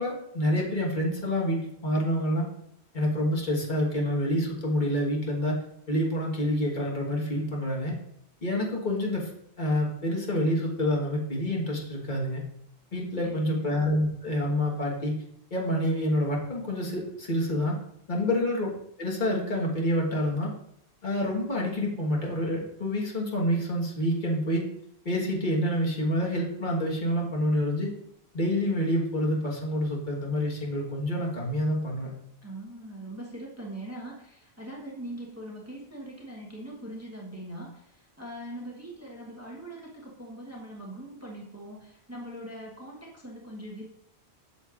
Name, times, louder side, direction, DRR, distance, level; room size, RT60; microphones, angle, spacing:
voice 1, 0.0-2.5 2.9-5.6 5.9-7.9 8.4-9.3 9.6-12.4 12.9-15.2 15.5-17.8 18.1-18.7 19.0-20.5 21.0-24.6 25.0-27.9 28.3-32.1, equal, 50° left, -2 dB, 1.6 m, -27 dB
voice 2, 13.2-13.7 32.4-43.8, right 1 dB, 15° right, -3 dB, 1.1 m, -41 dB
8.4 x 6.3 x 2.5 m, 0.75 s
omnidirectional pair, 1.1 m